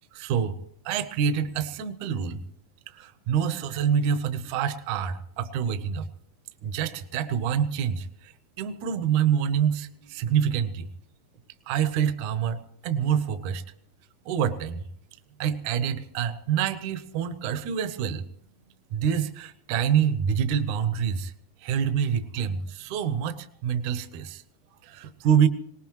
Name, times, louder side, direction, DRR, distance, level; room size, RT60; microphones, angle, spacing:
voice 1, 0.1-0.6 0.9-2.4 2.9-6.1 6.6-10.9 11.7-13.6 14.3-14.8 15.4-18.3 18.9-21.3 21.6-24.4 24.8-25.5, right 8 dB, 70° right, 10 dB, 2.1 m, -26 dB
22.0 x 19.0 x 3.0 m, 0.68 s
omnidirectional pair, 4.1 m